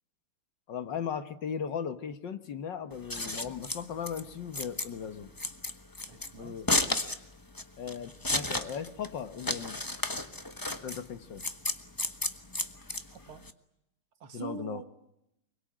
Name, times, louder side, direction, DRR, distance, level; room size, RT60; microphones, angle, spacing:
voice 1, 0.7-5.3 6.4-6.7 7.8-9.8 10.8-11.4 14.3-14.8, left 7 dB, 60° left, 10 dB, 1.9 m, -37 dB
Scissors, 2.9-13.5, left 2 dB, 15° left, 0.8 m, -33 dB
voice 2, 6.1-6.8 13.1-13.4 14.2-14.8, right 7 dB, 85° right, 7 dB, 2.8 m, -44 dB
25.0 x 22.5 x 8.8 m, 0.82 s
omnidirectional pair, 2.3 m